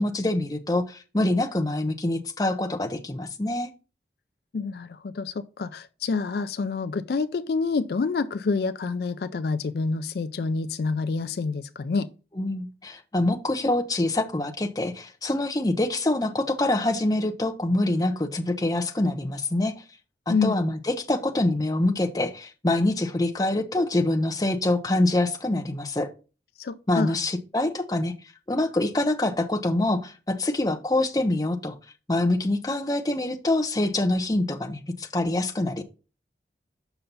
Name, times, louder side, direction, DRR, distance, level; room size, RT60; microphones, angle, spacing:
voice 1, 0.0-3.7 12.4-19.7 20.3-26.1 26.9-28.1 28.5-31.8 32.1-35.8, left 2 dB, 20° left, 0.6 m, -25 dB
voice 2, 4.5-12.1 20.3-20.6 26.6-27.1, left 4 dB, 60° left, 0.4 m, -27 dB
6.9 x 5.7 x 4.0 m
head